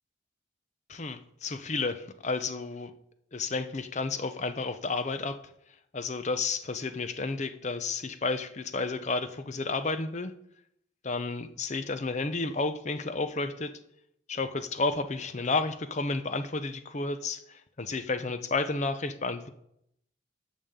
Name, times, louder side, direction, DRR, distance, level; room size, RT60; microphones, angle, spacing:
voice 1, 0.9-2.9 3.3-5.4 5.9-10.3 11.0-13.7 14.3-19.5, left 3 dB, 40° left, 10 dB, 0.6 m, -31 dB
12.0 x 7.2 x 3.7 m, 0.75 s
head